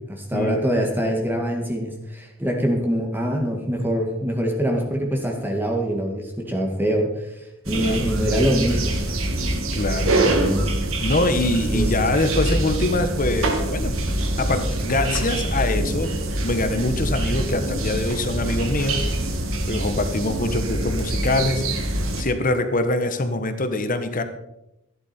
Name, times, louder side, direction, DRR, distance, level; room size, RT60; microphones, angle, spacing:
voice 1, 0.0-9.0 10.2-10.7 11.7-11.9, equal, 10° right, 1 dB, 1.9 m, -24 dB
sound 1, 7.6-22.2, right 1 dB, 70° right, 2.4 m, -24 dB
voice 2, 7.7-8.0 9.7-10.1 11.0-14.0 14.4-16.1 16.4-19.0 19.6-21.7 22.2-24.2, left 2 dB, 40° left, 9 dB, 1.4 m, -24 dB
15.5 x 11.0 x 4.5 m, 0.88 s
head